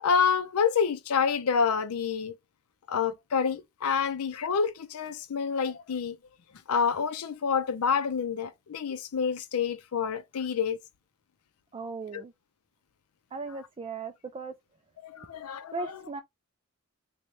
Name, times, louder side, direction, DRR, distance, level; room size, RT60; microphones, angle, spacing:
voice 1, 0.0-2.3 2.9-6.2 6.7-10.8 12.1-12.2 15.0-15.8, left 6 dB, 80° left, 0.5 m, -28 dB
voice 2, 11.7-12.3 13.3-14.5 15.7-16.2, right 3 dB, 25° right, 0.3 m, -37 dB
3.1 x 2.2 x 3.9 m
head